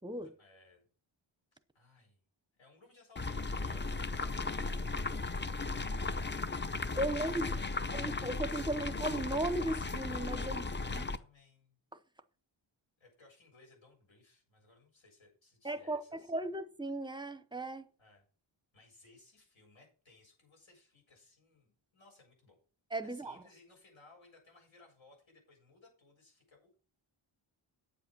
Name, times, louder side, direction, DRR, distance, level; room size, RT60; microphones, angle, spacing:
voice 1, 0.2-0.9 1.7-2.2 2.5-5.4 5.7-6.7 7.1-8.2 10.8-11.8 13.0-16.4 18.0-18.3 18.7-22.6 23.0-26.9, left 3 dB, 75° left, 7.2 m, -62 dB
sound 1, 3.2-11.2, left 3 dB, 25° left, 0.6 m, -36 dB
voice 2, 7.0-7.6 7.9-10.7 10.9-11.0 15.6-17.9 22.9-23.4, right 1 dB, 10° right, 0.7 m, -36 dB
9.1 x 7.6 x 6.0 m
wide cardioid pair, 135°, 48 cm